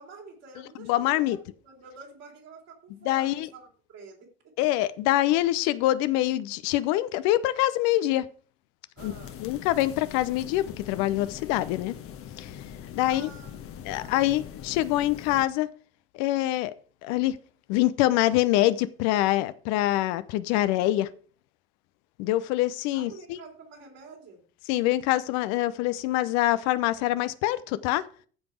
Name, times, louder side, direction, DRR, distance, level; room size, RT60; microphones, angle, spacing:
voice 1, 0.0-4.3 9.0-9.4 13.0-13.6 13.9-14.2 22.9-24.4, right 4 dB, 60° right, 3.7 m, -48 dB
voice 2, 0.9-1.4 3.0-3.5 4.6-8.3 9.0-9.1 9.4-12.0 12.4-12.5 12.9-13.3 13.9-15.7 16.1-16.7 17.0-17.4 17.7-21.1 22.2-23.4 24.7-28.0, left 15 dB, 65° left, 0.7 m, -25 dB
sound 1, 9.0-15.4, left 9 dB, 50° left, 1.1 m, -42 dB
14.5 x 5.2 x 4.6 m
figure-of-eight pair, 55°, 29 cm